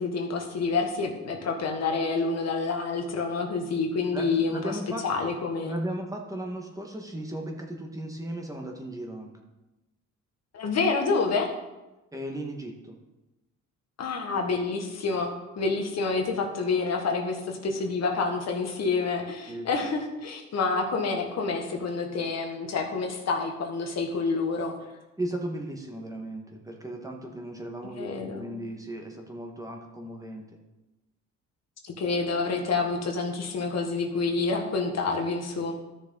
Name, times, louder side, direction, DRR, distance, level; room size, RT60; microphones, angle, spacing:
voice 1, 0.0-5.7 10.5-11.5 14.0-24.7 28.0-28.5 31.8-35.7, left 4 dB, 60° left, 2 dB, 1.7 m, -28 dB
voice 2, 4.1-5.1 5.6-9.3 12.1-13.0 19.5-19.7 25.2-30.4, right 1 dB, 10° right, 1 dB, 1.7 m, -36 dB
13.0 x 6.7 x 4.0 m, 1.0 s
cardioid pair, 90°, 30 cm